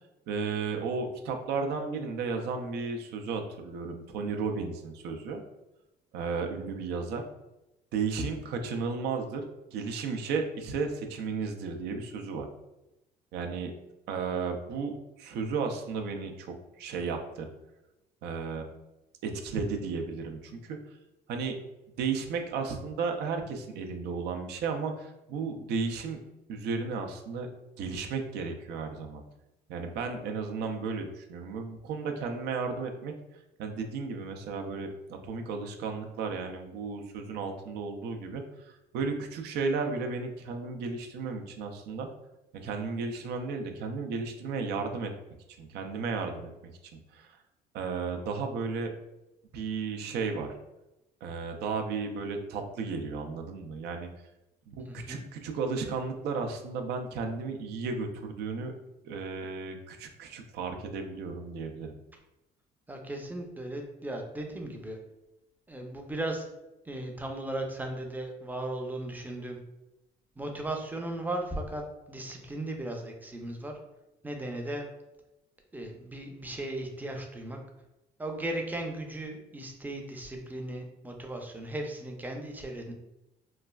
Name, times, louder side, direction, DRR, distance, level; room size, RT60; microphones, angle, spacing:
voice 1, 0.3-5.4 6.1-7.3 7.9-12.5 13.3-13.7 14.1-17.5 18.2-18.7 19.2-21.0 21.3-21.6 22.0-26.2 26.5-27.5 27.8-29.2 29.7-42.1 42.5-45.1 45.6-46.5 46.8-47.4 47.7-48.9 49.5-50.5 51.2-54.1 54.7-58.7 59.0-61.9, right 4 dB, 80° right, 4 dB, 0.4 m, -34 dB
voice 2, 54.8-55.2 62.9-65.0 65.7-66.5 66.8-69.6 70.4-73.7 74.2-74.9 75.7-77.6 78.2-82.9, right 1 dB, 10° right, 2 dB, 0.4 m, -36 dB
3.1 x 2.3 x 2.2 m, 0.94 s
cardioid pair, 110°, 17 cm